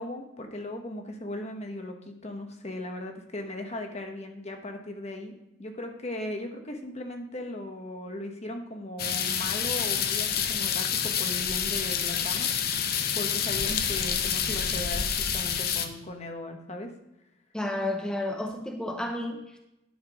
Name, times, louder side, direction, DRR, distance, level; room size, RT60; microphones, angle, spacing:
voice 1, 0.0-5.3 5.6-12.5 13.1-16.9, left 1 dB, 35° left, 4 dB, 1.1 m, -37 dB
sound 1, 9.0-15.9, left 7 dB, 55° left, 0.7 m, -28 dB
voice 2, 17.5-19.6, left 1 dB, 5° left, 3 dB, 0.7 m, -31 dB
10.5 x 5.9 x 5.0 m, 0.86 s
head